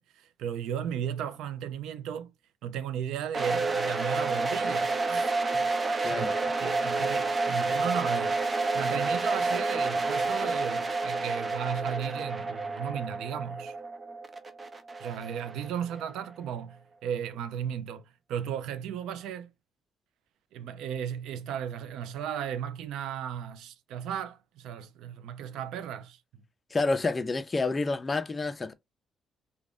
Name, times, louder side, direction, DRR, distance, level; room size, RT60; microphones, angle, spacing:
voice 1, 0.0-2.3 2.6-6.3 6.6-13.7 15.0-19.5 20.5-26.4, right 9 dB, 90° right, 0.3 m, -35 dB
sound 1, 3.3-16.2, right 3 dB, 30° right, 0.5 m, -29 dB
voice 2, 26.7-28.7, left 3 dB, 25° left, 0.4 m, -29 dB
2.4 x 2.1 x 3.4 m
cardioid pair, 90°, 0 cm